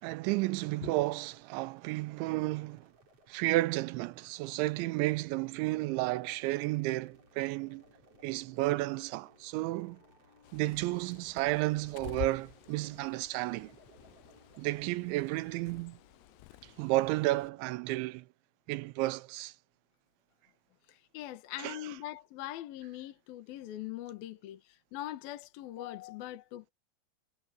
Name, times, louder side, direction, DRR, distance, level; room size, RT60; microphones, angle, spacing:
voice 1, 0.0-2.9 3.3-7.8 8.2-10.0 10.5-13.7 14.6-16.0 16.6-18.3 18.7-19.5 21.6-21.8, right 19 dB, 90° right, 3.1 m, -32 dB
sound 1, 0.8-14.8, right 3 dB, 35° right, 4.2 m, -65 dB
sound 2, 6.1-17.6, left 3 dB, 40° left, 6.6 m, -64 dB
Bird, 10.4-17.5, left 19 dB, 80° left, 2.5 m, -49 dB
voice 2, 20.9-26.7, left 14 dB, 65° left, 2.9 m, -42 dB
omnidirectional pair, 5.2 m